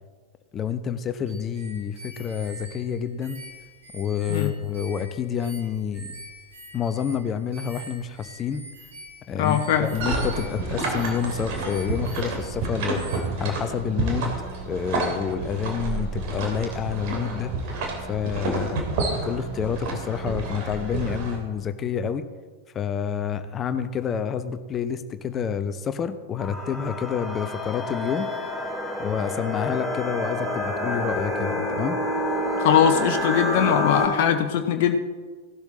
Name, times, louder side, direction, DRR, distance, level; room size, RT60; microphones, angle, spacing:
voice 1, 0.5-3.4 3.9-6.2 6.7-8.6 9.3-13.0 13.4-14.4 14.7-17.5 18.0-18.8 19.2-22.2 22.7-28.3 29.0-32.0, left 7 dB, 25° left, 11 dB, 0.9 m, -28 dB
sound 1, 1.3-12.7 12.9-13.2, right 1 dB, 65° right, 4.9 m, -45 dB
voice 2, 9.4-9.9 32.6-35.0, left 8 dB, 50° left, 6 dB, 1.0 m, -21 dB
sound 2, 9.7-21.4, right 3 dB, 50° right, 3.0 m, -29 dB
sound 3, 26.4-34.1, left 1 dB, 5° left, 3.2 m, -28 dB
16.5 x 12.0 x 3.9 m, 1.4 s
figure-of-eight pair, 90°, 0 cm